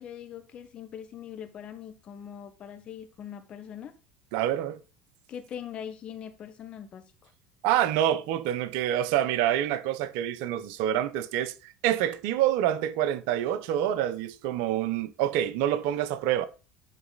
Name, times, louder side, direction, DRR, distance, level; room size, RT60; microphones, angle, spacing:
voice 1, 0.0-3.9 5.3-7.3, left 9 dB, 45° left, 1.3 m, -42 dB
voice 2, 4.3-4.8 7.6-16.5, right 11 dB, 70° right, 0.7 m, -27 dB
9.3 x 4.1 x 3.9 m
hypercardioid pair, 75°, 2 cm